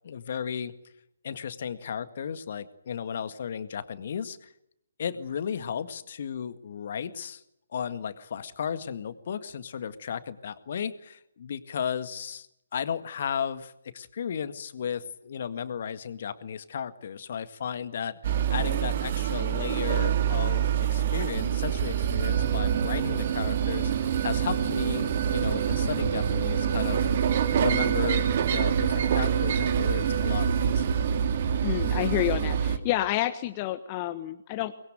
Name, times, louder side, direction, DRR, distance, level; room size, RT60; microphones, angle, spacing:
voice 1, 0.0-0.7 1.2-4.5 5.0-7.4 7.7-12.5 12.7-27.1 27.6-31.1, left 7 dB, 50° left, 12 dB, 1.8 m, -34 dB
sound 1, 18.2-32.8, right 8 dB, 45° right, 2.2 m, -26 dB
voice 2, 31.6-34.7, left 14 dB, 30° left, 9 dB, 1.3 m, -29 dB
24.0 x 21.5 x 9.2 m, 0.80 s
figure-of-eight pair, 135°, 0 cm